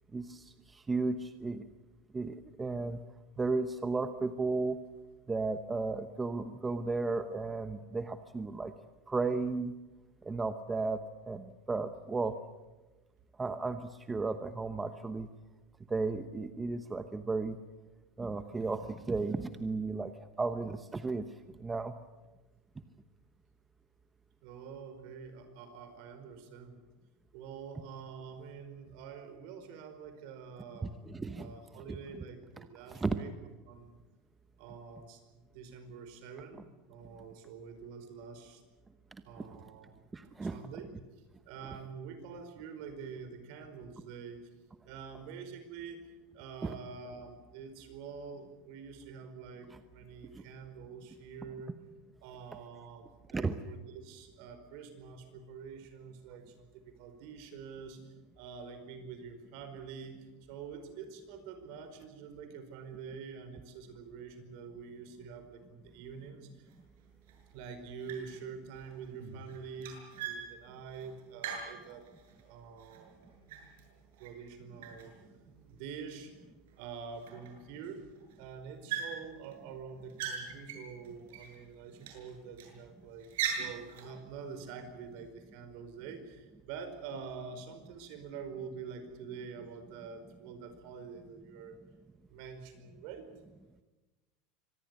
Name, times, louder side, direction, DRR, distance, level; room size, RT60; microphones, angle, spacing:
voice 1, 0.1-0.4 0.7-1.6 2.1-3.0 3.4-4.8 5.3-8.7 9.1-9.7 10.2-11.0 11.3-12.3 13.4-15.3 15.9-17.6 18.2-20.1 20.4-21.2 21.6-21.9 30.8-31.5 31.9-32.0 32.9-33.2 40.1-40.6 46.6-46.7 49.7-49.8 53.3-53.5, right 3 dB, 10° right, 10 dB, 0.9 m, -34 dB
voice 2, 24.4-26.8 27.3-31.0 31.4-33.3 33.7-34.0 34.6-36.6 36.9-38.6 39.2-39.9 40.4-40.9 41.5-44.4 44.8-51.7 52.2-60.2 60.5-66.7 67.5-72.1 72.4-73.2 74.2-75.1 75.7-76.3 76.8-78.0 78.4-83.3 83.5-91.8 92.3-93.3, right 6 dB, 60° right, 9 dB, 4.9 m, -46 dB
sound 1, 66.7-66.8 67.3-67.7 68.0-68.5 68.8-72.4 72.8-74.5 74.8-75.8 76.4-76.5 76.7-76.8 77.2-77.9 78.2-78.4 78.9-79.5 79.9-81.6 82.0-82.8 83.2-84.1, right 8 dB, 85° right, 7.7 m, -41 dB
25.0 x 19.0 x 8.3 m, 1.1 s
supercardioid pair, 155°, 0 cm